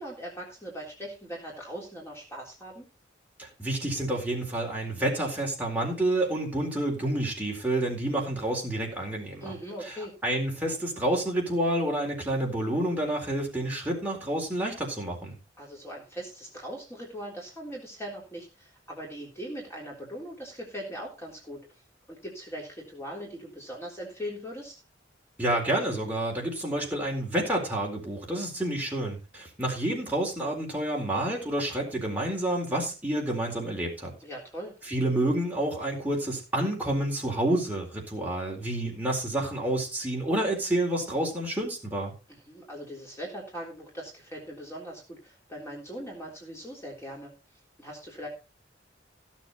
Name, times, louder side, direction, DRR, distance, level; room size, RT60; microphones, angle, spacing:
voice 1, 0.0-2.9 9.4-10.1 15.6-21.6 22.1-24.8 34.2-34.7 42.3-47.3 47.8-48.3, equal, 15° left, -2 dB, 3.6 m, -40 dB
voice 2, 3.4-9.6 10.2-15.4 25.4-34.1 34.9-42.1, right 1 dB, 10° right, -2 dB, 4.2 m, -29 dB
16.0 x 7.5 x 4.3 m, 0.30 s
head